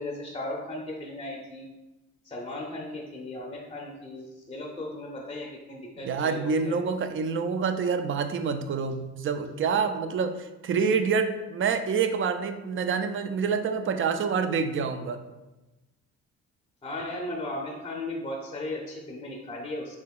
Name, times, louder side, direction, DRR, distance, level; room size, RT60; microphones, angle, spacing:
voice 1, 0.0-1.7 2.2-6.8 16.8-20.0, left 1 dB, 20° left, -1 dB, 0.6 m, -36 dB
voice 2, 6.0-15.2, right 5 dB, 45° right, 9 dB, 0.4 m, -27 dB
4.6 x 2.9 x 2.3 m, 1.0 s
cardioid pair, 90°, 30 cm